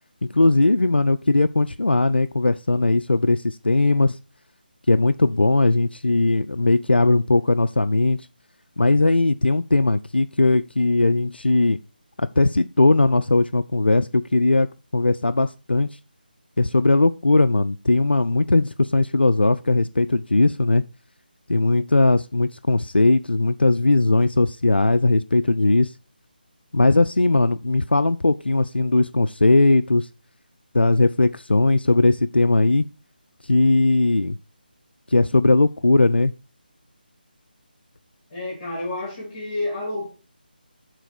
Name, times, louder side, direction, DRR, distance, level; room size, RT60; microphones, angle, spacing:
voice 1, 0.2-4.2 4.9-8.2 8.8-11.8 12.2-14.7 14.9-15.9 16.6-20.8 21.5-25.9 26.7-30.1 30.7-32.9 33.5-34.4 35.1-36.3, left 2 dB, 85° left, 0.4 m, -19 dB
voice 2, 38.3-40.2, left 2 dB, 25° left, 3.0 m, -29 dB
6.9 x 4.0 x 6.0 m
figure-of-eight pair, 155°, 5 cm